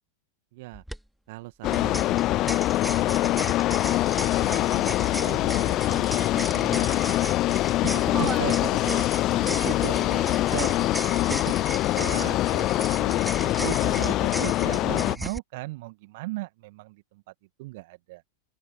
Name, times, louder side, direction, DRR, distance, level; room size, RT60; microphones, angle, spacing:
voice 1, 0.5-0.8 1.3-3.4 4.4-6.9 7.8-7.9 8.2-8.8 9.3-10.0 10.5-11.6 12.0-17.3 17.6-18.2, right 21 dB, 50° right, 1.9 m, -38 dB
sound 1, 0.7-1.0 1.7-15.4, equal, ahead, 2.4 m, -37 dB
sound 2, 1.6-15.2, left 16 dB, 35° left, 0.5 m, -24 dB
voice 2, 3.5-4.0 7.9-9.0 9.3-10.5 10.8-10.9, right 6 dB, 20° right, 4.2 m, -38 dB
open air
figure-of-eight pair, 90°, 0 cm